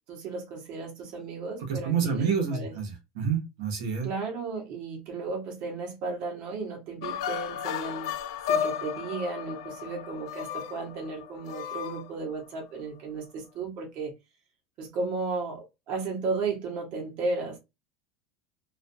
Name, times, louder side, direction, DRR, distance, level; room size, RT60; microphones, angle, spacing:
voice 1, 0.1-2.7 4.0-8.1 8.5-14.1 14.8-17.6, right 3 dB, 40° right, 1.0 m, -34 dB
voice 2, 1.7-4.1, right 6 dB, 70° right, 0.9 m, -28 dB
sound 1, 7.0-12.6, left 8 dB, 85° left, 0.4 m, -33 dB
2.5 x 2.3 x 2.6 m
cardioid pair, 175°, 3 cm